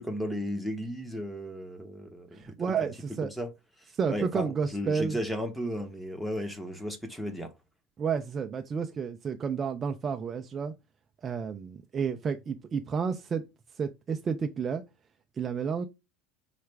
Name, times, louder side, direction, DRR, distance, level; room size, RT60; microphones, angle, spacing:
voice 1, 0.0-2.6 2.8-2.9 3.4-3.5 4.1-7.5, equal, ahead, 0.8 m, -34 dB
voice 2, 2.3-3.3 3.9-5.2 8.0-10.7 11.2-13.4 13.8-14.8 15.4-15.9, right 6 dB, 25° right, 0.4 m, -31 dB
5.6 x 2.4 x 3.2 m
cardioid pair, 150°, 0 cm